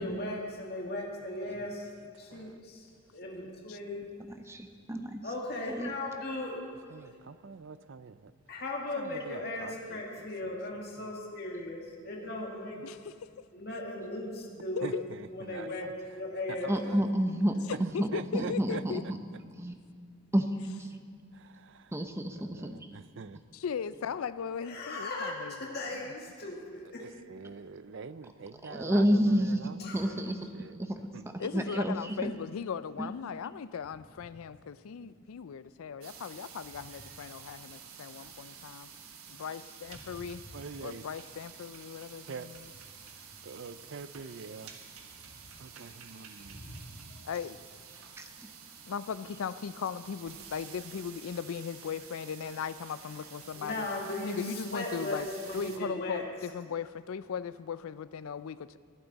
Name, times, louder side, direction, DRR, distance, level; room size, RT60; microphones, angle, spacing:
voice 1, 0.0-1.9 2.2-4.1 5.2-6.6 7.0-7.1 8.5-12.8 13.5-14.9 15.3-16.7 24.6-27.0 29.8-30.1 34.5-34.6 40.1-40.4 46.4-47.2 53.6-56.2, left 2 dB, 45° left, -2 dB, 1.9 m, -38 dB
voice 2, 4.5-5.2 5.8-5.9 16.7-19.2 19.6-19.8 20.3-20.5 20.8-21.0 21.9-22.7 28.7-30.4 30.8-31.0 31.5-32.3 33.0-33.1 48.2-48.3, equal, 10° right, 6 dB, 0.8 m, -29 dB
voice 3, 6.9-8.3 9.0-10.6 11.0-11.1 14.8-15.9 16.5-17.1 17.7-17.8 18.1-19.1 21.3-21.9 22.3-23.4 27.0-31.3 40.5-41.1 42.3-42.5 43.4-44.7 45.6-46.7, right 5 dB, 55° right, 14 dB, 0.5 m, -45 dB
voice 4, 17.9-19.0 23.5-25.8 31.4-38.9 39.3-40.4 40.8-42.7 47.3-47.6 48.9-53.8 54.2-55.3 55.5-58.8, left 6 dB, 75° left, 15 dB, 0.4 m, -38 dB
sound 1, 36.0-55.8, right 7 dB, 85° right, 1.4 m, -50 dB
20.5 x 11.5 x 4.0 m, 2.2 s
head